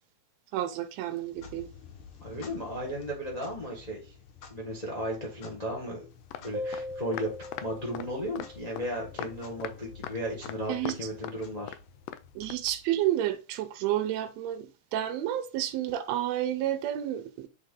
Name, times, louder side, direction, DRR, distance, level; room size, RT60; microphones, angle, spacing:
voice 1, 0.5-1.7 10.7-11.0 12.4-17.5, right 12 dB, 75° right, 1.8 m, -30 dB
Clock, 1.2-13.2, left 6 dB, 60° left, 1.5 m, -51 dB
voice 2, 2.2-4.0 4.5-6.1 6.4-7.3 7.6-11.8, equal, 30° left, 0.7 m, -35 dB
sound 1, 6.3-6.4 6.7-6.8 7.1-7.7 7.9-8.1 8.4-8.5 8.8-8.9 9.2-9.3 9.6-9.7 10.0-10.2 10.4-11.0 11.2-11.4 11.7-11.8 12.1-12.2 12.5-12.6, left 11 dB, 85° left, 1.4 m, -39 dB
sound 2, 6.5-9.8, left 1 dB, 55° right, 1.5 m, -41 dB
7.8 x 3.5 x 3.7 m
omnidirectional pair, 3.3 m